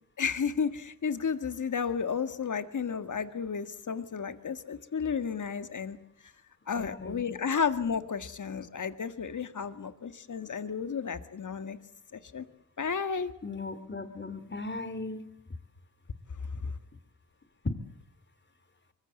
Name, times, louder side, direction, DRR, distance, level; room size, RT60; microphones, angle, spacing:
voice 1, 0.2-6.0 6.7-11.8 12.1-12.5 12.8-13.3, left 6 dB, 60° left, 10 dB, 1.8 m, -32 dB
voice 2, 6.7-7.3 13.4-15.3 17.6-17.7, left 3 dB, 30° left, 12 dB, 2.9 m, -36 dB
24.0 x 21.5 x 7.9 m, 0.75 s
cardioid pair, 75°, 34 cm